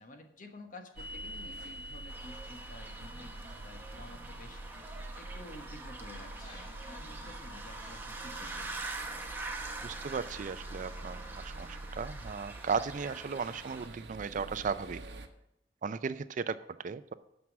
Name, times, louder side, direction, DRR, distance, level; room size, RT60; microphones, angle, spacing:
voice 1, 0.0-4.6 5.1-8.8, left 2 dB, 50° left, 5 dB, 1.3 m, -51 dB
sound 1, 0.9-15.3, right 2 dB, 70° right, 1.0 m, -47 dB
sound 2, 1.0-7.9 8.3-9.2 9.7-10.5, left 1 dB, 30° left, 3.4 m, -51 dB
sound 3, 2.1-13.9, right 3 dB, 10° right, 1.0 m, -45 dB
voice 2, 9.8-15.0 15.8-17.1, right 5 dB, 45° right, 14 dB, 0.4 m, -36 dB
9.5 x 6.1 x 7.3 m, 0.82 s
head